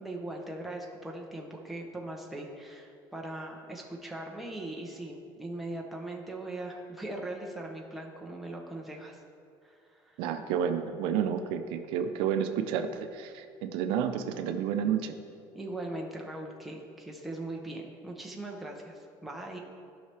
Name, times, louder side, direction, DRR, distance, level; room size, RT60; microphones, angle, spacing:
voice 1, 0.0-9.2 9.6-10.2 15.5-19.6, right 2 dB, ahead, -1 dB, 0.8 m, -40 dB
voice 2, 10.2-15.2, right 8 dB, 75° right, 7 dB, 0.6 m, -30 dB
15.0 x 5.6 x 3.4 m, 2.3 s
cardioid pair, 175°, 9 cm